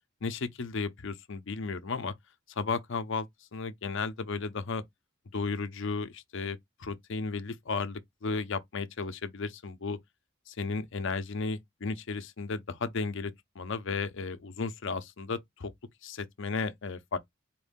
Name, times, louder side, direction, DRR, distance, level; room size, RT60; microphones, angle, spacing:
voice 1, 0.2-2.1 2.6-4.8 5.3-10.0 10.5-15.7 16.0-17.2, left 4 dB, 65° left, 0.7 m, -34 dB
4.5 x 2.6 x 3.5 m
head